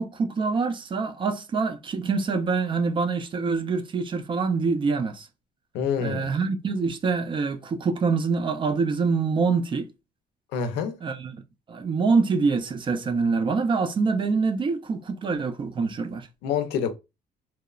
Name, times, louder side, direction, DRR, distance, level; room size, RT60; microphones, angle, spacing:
voice 1, 0.0-5.3 6.0-9.9 11.0-11.4 11.7-16.3, right 4 dB, 30° right, 0.4 m, -25 dB
voice 2, 5.7-6.3 10.5-10.9 16.4-16.9, left 7 dB, 90° left, 0.5 m, -26 dB
2.9 x 2.0 x 2.3 m
cardioid pair, 110°, 17 cm